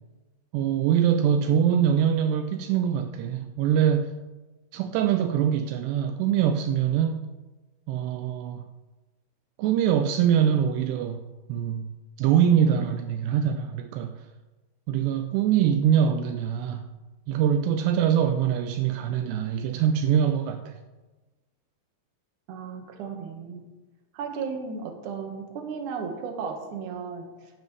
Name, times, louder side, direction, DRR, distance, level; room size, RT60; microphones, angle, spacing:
voice 1, 0.5-4.2 4.7-7.3 7.9-8.7 9.6-14.3 14.9-16.9 17.3-20.8, right 9 dB, 80° right, 7 dB, 2.6 m, -24 dB
voice 2, 22.5-23.7 24.1-27.5, right 5 dB, 60° right, 3 dB, 2.4 m, -35 dB
15.5 x 10.5 x 3.3 m, 1.2 s
omnidirectional pair, 5.0 m